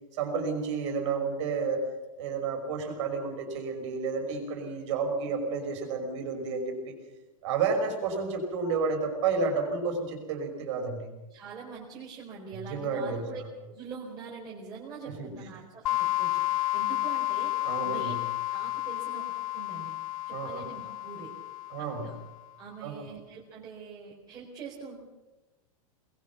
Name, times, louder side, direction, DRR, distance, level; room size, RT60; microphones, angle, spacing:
voice 1, 0.1-1.9 2.2-7.0 7.4-11.1 12.5-13.5 15.0-15.3 17.6-18.2 20.3-20.6 21.7-22.1 22.8-23.1, right 4 dB, 55° right, 4 dB, 5.8 m, -31 dB
voice 2, 11.3-13.4 13.7-18.2 18.5-19.9 20.3-21.3 21.8-22.1 22.6-25.0, right 5 dB, 20° right, -4 dB, 4.5 m, -44 dB
sound 1, 15.9-22.4, left 17 dB, 70° left, 0.7 m, -31 dB
23.0 x 21.5 x 6.0 m, 1.1 s
supercardioid pair, 155°, 19 cm